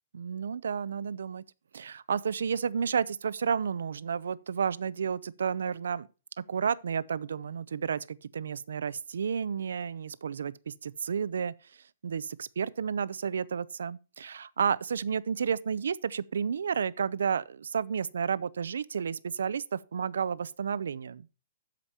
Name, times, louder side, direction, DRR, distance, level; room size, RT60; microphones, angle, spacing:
voice 1, 0.1-1.4 1.7-6.1 6.4-11.5 12.0-21.3, right 6 dB, 85° right, 0.6 m, -31 dB
12.5 x 5.2 x 4.2 m
hypercardioid pair, 160°, 0 cm